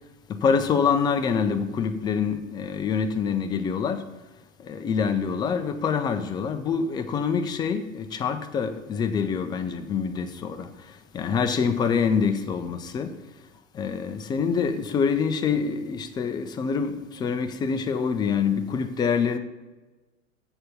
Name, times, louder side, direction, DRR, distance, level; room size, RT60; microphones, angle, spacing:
voice 1, 0.3-4.0 4.7-10.7 11.1-13.1 13.8-19.4, left 6 dB, 10° left, 0.4 m, -25 dB
7.8 x 6.6 x 6.9 m
figure-of-eight pair, 100°, 40 cm